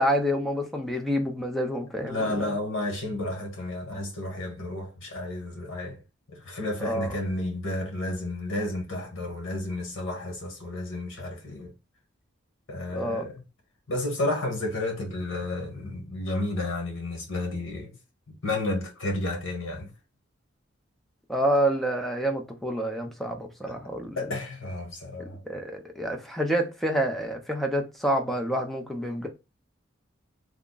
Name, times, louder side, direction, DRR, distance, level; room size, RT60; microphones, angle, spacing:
voice 1, 0.0-2.4 6.8-7.2 12.9-13.3 21.3-24.3 25.2-29.3, equal, ahead, 0.6 m, -28 dB
voice 2, 2.0-6.0 6.3-11.7 12.7-13.4 13.9-17.9 18.4-19.9 23.7-23.8 24.2-25.4, left 2 dB, 85° left, 1.3 m, -31 dB
3.4 x 2.1 x 3.8 m
head